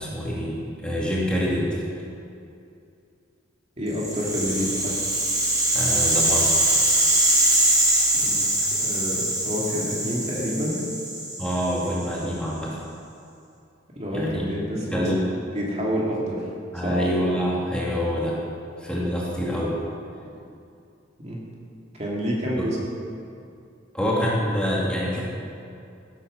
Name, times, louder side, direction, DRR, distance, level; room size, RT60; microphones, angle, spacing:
voice 1, 0.0-1.8 5.7-6.7 11.4-12.8 14.1-15.3 16.7-18.4 18.8-19.8 22.6-22.7 23.9-25.2, equal, 5° left, -6 dB, 2.8 m, -26 dB
voice 2, 3.8-5.0 8.1-8.5 8.8-10.8 13.9-15.1 15.5-16.5 16.8-17.0 21.2-21.4 21.9-22.8, equal, 35° right, -4 dB, 2.4 m, -28 dB
Rattle (instrument), 3.9-12.1, right 1 dB, 20° right, 4.3 m, -23 dB
16.0 x 9.0 x 6.5 m, 2.5 s
head